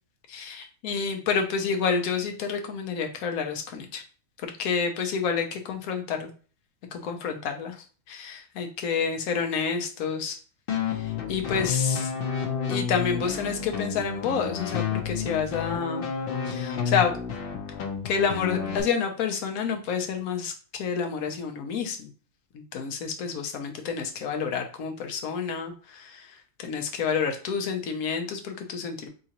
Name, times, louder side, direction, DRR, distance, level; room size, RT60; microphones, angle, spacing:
voice 1, 0.3-4.0 4.4-6.3 6.9-7.8 8.1-10.4 10.9-12.1 12.7-16.1 16.4-17.1 18.0-20.5 20.8-22.1 22.5-26.3 26.6-29.1, left 6 dB, 90° left, 4 dB, 1.2 m, -29 dB
sound 1, 10.7-18.8, left 7 dB, 55° left, 0.7 m, -30 dB
3.7 x 3.0 x 2.9 m, 0.38 s
omnidirectional pair, 1.5 m